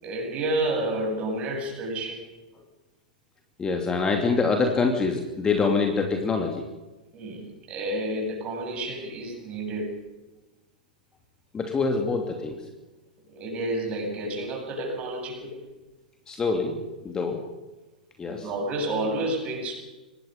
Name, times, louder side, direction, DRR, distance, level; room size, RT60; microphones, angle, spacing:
voice 1, 0.0-2.3 7.1-9.9 13.3-15.6 18.3-19.7, right 1 dB, 25° right, 1 dB, 7.9 m, -30 dB
voice 2, 3.6-6.6 11.5-12.6 16.3-17.4 18.2-18.5, left 4 dB, 15° left, 3 dB, 2.7 m, -25 dB
25.5 x 19.5 x 5.5 m, 1.1 s
figure-of-eight pair, 100°, 5 cm